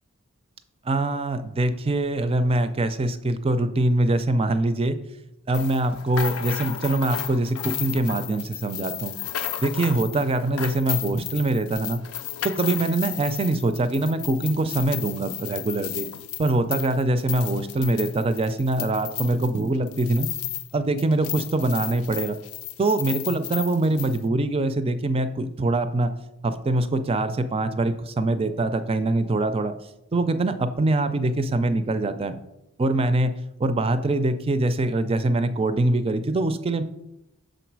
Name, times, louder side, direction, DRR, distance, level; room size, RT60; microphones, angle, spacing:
voice 1, 0.8-5.0 5.5-9.1 9.6-12.0 12.4-16.1 16.4-20.3 20.7-22.4 22.8-26.1 26.4-29.7 30.1-32.4 32.8-33.3 33.6-36.8, right 2 dB, 25° right, 11 dB, 0.4 m, -23 dB
sound 1, 5.5-20.7 21.0-24.2, left 12 dB, 75° left, 0.4 m, -34 dB
6.5 x 4.0 x 4.6 m, 0.89 s
head